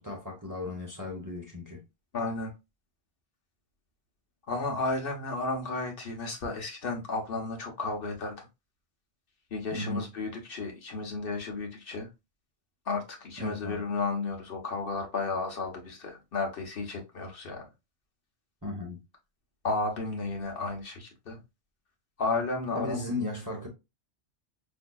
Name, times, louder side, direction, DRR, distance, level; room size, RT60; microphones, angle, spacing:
voice 1, 0.0-1.8 9.7-10.1 13.4-13.8 18.6-19.0 22.7-23.7, left 2 dB, 20° right, 0.7 m, -35 dB
voice 2, 2.1-2.5 4.5-8.3 9.5-12.1 12.9-17.6 19.6-21.4 22.2-23.0, left 3 dB, 55° left, 1.0 m, -33 dB
5.0 x 2.6 x 2.2 m
omnidirectional pair, 1.2 m